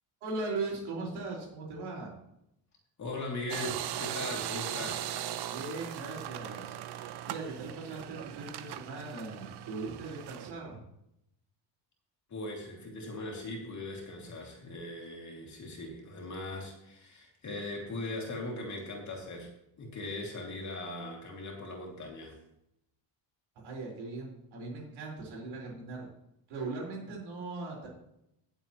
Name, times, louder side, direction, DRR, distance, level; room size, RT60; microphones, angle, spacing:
voice 1, 0.2-2.1 5.5-6.7 7.2-10.8 23.6-26.1 26.5-27.9, right 3 dB, 80° right, -3 dB, 4.9 m, -39 dB
voice 2, 3.0-5.1 12.3-19.5 19.8-22.4, left 2 dB, 35° left, 0 dB, 2.7 m, -39 dB
sound 1, 3.5-10.5, right 11 dB, 60° right, 0.7 m, -39 dB
18.0 x 7.2 x 3.1 m, 0.80 s
cardioid pair, 155°, 46 cm